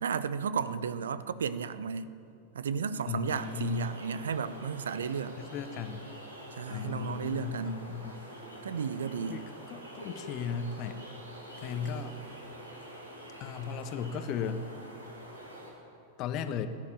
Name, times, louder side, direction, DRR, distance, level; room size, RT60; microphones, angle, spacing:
voice 1, 0.0-2.1 2.5-5.4 6.6-7.8 8.6-9.4, right 6 dB, 70° right, 14 dB, 0.6 m, -33 dB
voice 2, 3.0-3.9 5.4-6.1 6.7-8.2 9.3-11.0 11.6-12.2 13.4-14.6 16.2-16.7, left 6 dB, 40° left, 10 dB, 1.1 m, -36 dB
sound 1, 3.2-15.7, equal, 90° right, 3.8 m, -46 dB
17.0 x 10.5 x 7.4 m, 2.6 s
figure-of-eight pair, 90°, 0 cm